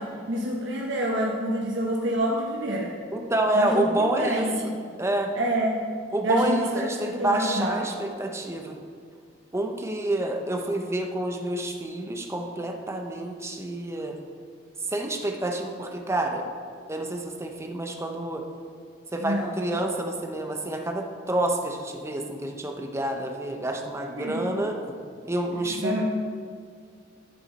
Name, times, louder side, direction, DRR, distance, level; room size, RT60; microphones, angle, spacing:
voice 1, 0.0-2.9 3.5-4.8 5.3-5.8 6.2-7.8 19.2-19.6 24.2-24.7 25.8-26.0, right 1 dB, 70° right, -2 dB, 1.1 m, -27 dB
voice 2, 3.1-4.5 5.0-5.3 6.1-8.8 9.5-14.1 14.9-16.5 16.9-18.5 19.1-24.8 25.2-26.0, right 1 dB, 15° right, 3 dB, 0.8 m, -28 dB
12.5 x 7.1 x 4.2 m, 2.1 s
head